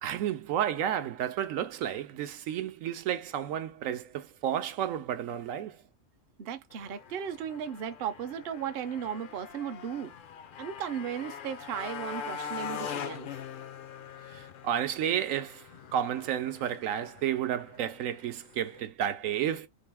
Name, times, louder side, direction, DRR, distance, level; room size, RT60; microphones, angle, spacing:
voice 1, 0.0-5.8 14.3-15.6 15.9-19.7, right 10 dB, 80° right, 1.0 m, -31 dB
voice 2, 6.4-10.1 10.6-13.3, right 8 dB, 55° right, 0.7 m, -36 dB
Motorcycle, 6.7-18.8, left 7 dB, 60° left, 0.6 m, -43 dB
3.9 x 2.7 x 3.4 m
omnidirectional pair, 1.4 m